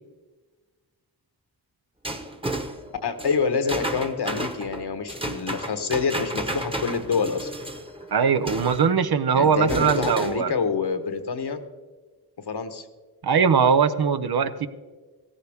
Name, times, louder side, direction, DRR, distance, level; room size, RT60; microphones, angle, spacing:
sound 1, 2.0-8.9 9.4-10.5, right 1 dB, 15° right, 1.2 m, -32 dB
voice 1, 3.0-7.5 9.3-11.6 12.5-12.9, left 5 dB, 70° left, 9 dB, 1.3 m, -27 dB
voice 2, 8.1-10.5 13.2-14.7, right 6 dB, 65° right, 11 dB, 0.9 m, -21 dB
16.0 x 14.0 x 3.6 m, 1.3 s
wide cardioid pair, 70°, 41 cm